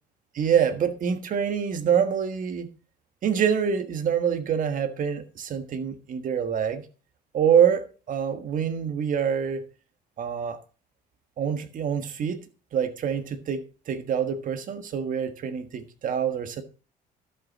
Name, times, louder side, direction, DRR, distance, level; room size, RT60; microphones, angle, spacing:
voice 1, 0.3-2.7 3.2-6.8 7.3-9.6 10.2-10.6 11.4-12.4 12.7-16.6, right 8 dB, 50° right, 1.4 m, -25 dB
12.0 x 7.1 x 4.1 m
cardioid pair, 110°, 17 cm